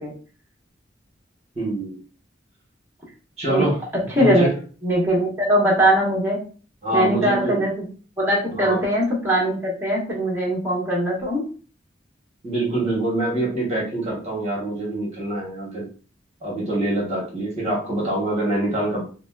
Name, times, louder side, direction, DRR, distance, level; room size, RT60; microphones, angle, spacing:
voice 1, 1.5-2.0 3.4-3.8 4.2-4.5 6.8-7.6 8.5-8.8 12.4-15.9 16.4-19.0, right 1 dB, 35° right, -4 dB, 1.2 m, -25 dB
voice 2, 4.2-4.5 4.8-6.4 6.9-7.8 8.2-11.4, right 1 dB, 15° right, -7 dB, 1.1 m, -21 dB
3.9 x 2.0 x 2.3 m, 0.38 s
head